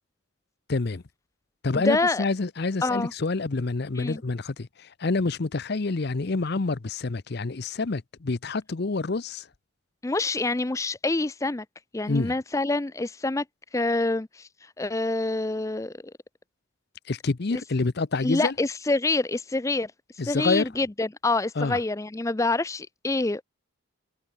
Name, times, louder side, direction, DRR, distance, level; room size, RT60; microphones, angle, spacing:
voice 1, 0.7-1.0 1.6-9.5 12.1-12.3 17.1-18.5 20.2-20.7 21.6-21.8, left 3 dB, 50° left, 0.7 m, -27 dB
voice 2, 1.7-2.3 2.8-3.1 4.0-4.2 10.0-11.6 11.9-13.4 13.7-15.9 18.2-19.9 20.3-23.4, left 2 dB, 15° left, 0.4 m, -26 dB
head